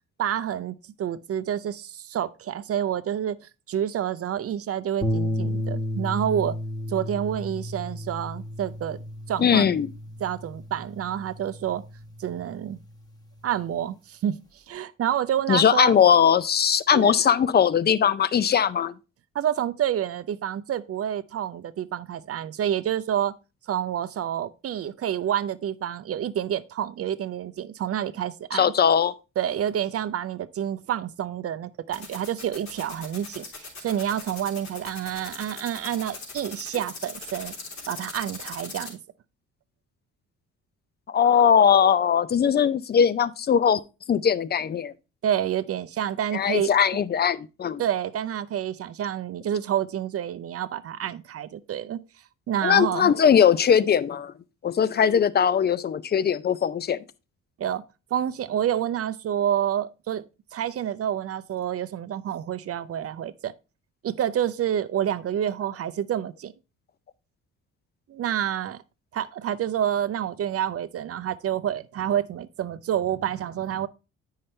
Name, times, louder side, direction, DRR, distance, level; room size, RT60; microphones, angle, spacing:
voice 1, 0.2-3.4 3.7-6.6 6.9-9.0 9.3-9.7 10.2-11.8 12.2-12.8 13.4-16.0 16.9-17.1 19.3-23.3 23.7-28.7 29.4-37.5 37.9-39.0 45.2-46.7 47.8-52.0 52.5-53.1 57.6-57.8 58.1-60.2 60.5-63.5 64.0-66.5 68.1-68.8 69.1-73.9, right 10 dB, 50° right, 0.6 m, -28 dB
sound 1, 5.0-13.4, equal, 10° left, 1.3 m, -33 dB
voice 2, 9.4-9.9 15.5-18.9 28.5-29.1 41.1-43.8 44.1-44.9 46.3-47.8 52.6-54.3 54.6-57.0, left 8 dB, 35° left, 0.5 m, -20 dB
sound 2, 31.9-38.9, left 4 dB, 70° left, 3.4 m, -39 dB
8.6 x 5.6 x 3.2 m
cardioid pair, 90°, 30 cm